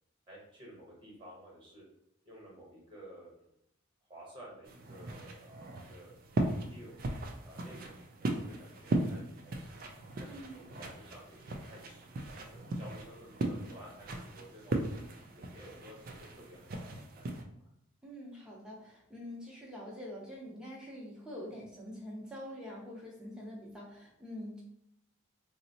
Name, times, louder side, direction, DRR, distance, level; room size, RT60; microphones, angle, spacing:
voice 1, 0.3-1.8 2.2-3.6 4.1-6.1 6.7-7.0 7.4-9.7 10.2-14.8 15.3-17.7, right 1 dB, 25° right, -4 dB, 1.0 m, -53 dB
sound 1, 4.7-17.4, right 2 dB, 45° right, 0.3 m, -38 dB
voice 2, 10.2-10.6 18.0-24.6, equal, 5° right, -4 dB, 0.6 m, -45 dB
3.8 x 2.1 x 2.7 m, 0.76 s
head